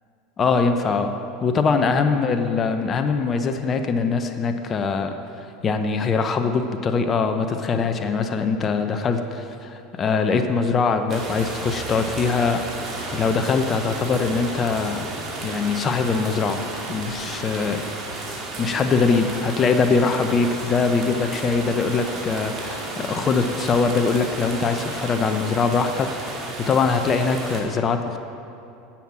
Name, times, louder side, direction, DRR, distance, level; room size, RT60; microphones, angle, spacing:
voice 1, 0.4-1.1 1.4-5.1 5.6-12.9 13.1-15.1 15.4-16.6 16.9-17.8 18.6-28.2, left 4 dB, 35° left, 7 dB, 0.8 m, -22 dB
sound 1, 11.1-27.6, right 2 dB, 40° right, 2.4 m, -33 dB
10.0 x 7.3 x 7.3 m, 2.7 s
hypercardioid pair, 95°, 0 cm